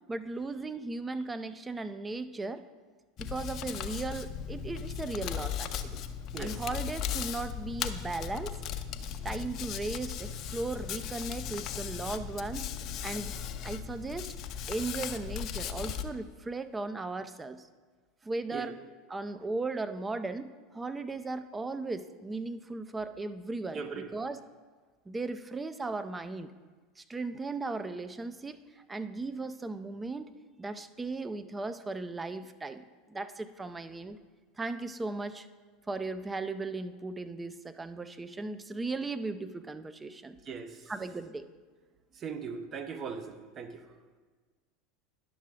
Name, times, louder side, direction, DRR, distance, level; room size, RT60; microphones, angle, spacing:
voice 1, 0.1-2.6 3.2-6.0 6.4-8.6 9.2-12.6 13.0-14.3 14.7-17.7 18.2-18.8 19.1-24.4 25.1-26.5 27.0-30.3 30.6-34.2 34.6-35.5 35.9-40.4 40.9-41.5, right 3 dB, 15° right, 11 dB, 0.6 m, -37 dB
Hands, 3.2-16.0, left 8 dB, 50° left, 0.6 m, -37 dB
voice 2, 6.3-6.6 18.5-18.7 23.7-24.1 40.4-40.9 42.1-43.9, right 5 dB, 35° right, 7 dB, 0.9 m, -39 dB
11.0 x 6.4 x 3.7 m, 1.4 s
hypercardioid pair, 85°, 0 cm